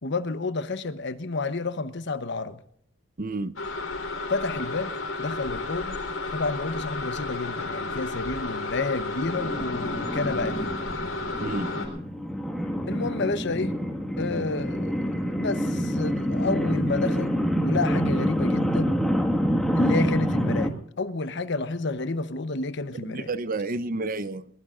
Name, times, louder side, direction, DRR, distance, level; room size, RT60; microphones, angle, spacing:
voice 1, 0.0-2.6 4.3-4.9 5.2-6.0 6.3-10.8 12.9-13.7 14.2-14.9 15.2-17.3 17.6-19.0 19.8-23.3, left 3 dB, 60° left, 0.9 m, -30 dB
voice 2, 3.2-3.5 11.4-11.7 23.0-24.5, right 2 dB, 45° right, 0.8 m, -30 dB
sound 1, 3.6-11.9, left 3 dB, 85° left, 3.9 m, -32 dB
sound 2, 9.2-20.7, equal, ahead, 1.8 m, -27 dB
22.0 x 19.5 x 2.5 m
head